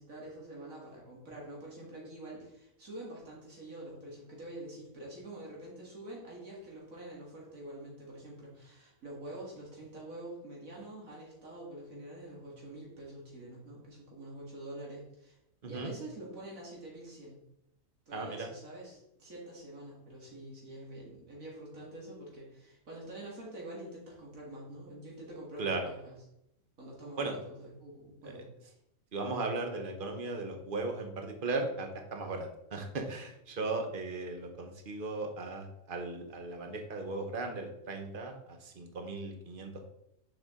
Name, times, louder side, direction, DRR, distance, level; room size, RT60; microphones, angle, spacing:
voice 1, 0.0-15.4 15.7-17.4 18.1-26.1 26.8-28.7, right 1 dB, 80° right, -4 dB, 2.4 m, -46 dB
voice 2, 18.1-18.5 25.6-25.9 27.2-27.4 28.2-28.4 29.1-39.9, right 3 dB, 45° right, 4 dB, 1.1 m, -37 dB
6.8 x 5.1 x 3.7 m, 0.82 s
omnidirectional pair, 1.4 m